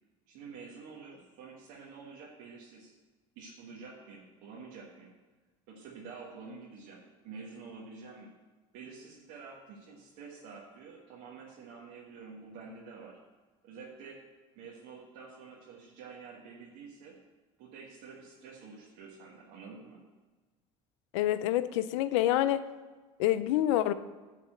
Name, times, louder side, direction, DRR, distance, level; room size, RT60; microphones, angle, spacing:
voice 1, 0.3-2.9 3.3-5.1 5.7-8.3 8.7-13.2 13.6-14.2 14.5-17.2 17.6-20.0, right 5 dB, 70° right, -3 dB, 1.6 m, -48 dB
voice 2, 21.1-22.6 23.2-23.9, left 13 dB, 85° left, 13 dB, 0.5 m, -27 dB
11.0 x 4.1 x 7.7 m, 1.3 s
supercardioid pair, 100°, 15 cm